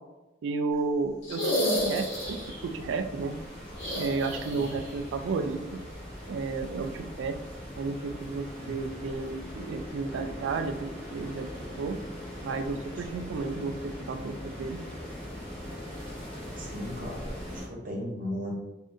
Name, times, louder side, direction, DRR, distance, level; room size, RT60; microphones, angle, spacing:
voice 1, 0.4-3.3 3.9-5.8 6.3-7.4 7.8-11.5 11.8-12.0 12.4-14.8, right 4 dB, 70° right, 8 dB, 0.3 m, -32 dB
sound 1, 1.2-2.6 3.7-4.9 5.2-5.3 6.9-7.0, equal, 75° left, 1.2 m, -30 dB
sound 2, 1.7-17.7, equal, 5° left, 1.2 m, -41 dB
voice 2, 16.6-18.5, equal, 45° right, -2 dB, 0.9 m, -37 dB
2.6 x 2.5 x 3.5 m, 1.0 s
head